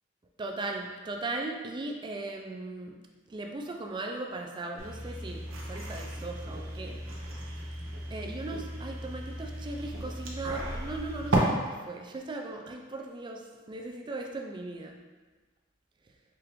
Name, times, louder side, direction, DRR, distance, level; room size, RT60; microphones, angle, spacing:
voice 1, 0.4-3.0 3.3-7.3 8.1-13.4 13.7-15.0, right 2 dB, 25° right, 2 dB, 0.3 m, -38 dB
sound 1, 4.8-11.4, right 2 dB, 85° right, 0.7 m, -36 dB
4.8 x 2.5 x 3.0 m, 1.3 s
head